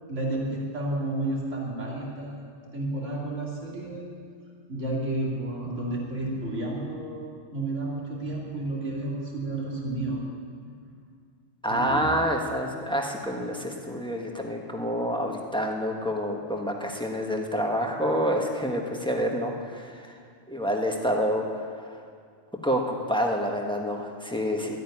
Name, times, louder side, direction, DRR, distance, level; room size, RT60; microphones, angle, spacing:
voice 1, 0.0-2.4 2.7-4.0 4.7-10.2 11.7-12.2, right 2 dB, 70° right, -3 dB, 3.0 m, -31 dB
voice 2, 11.6-20.2 20.5-22.0 22.6-24.8, equal, 5° left, 1 dB, 1.3 m, -28 dB
13.0 x 9.1 x 9.9 m, 2.1 s
omnidirectional pair, 1.3 m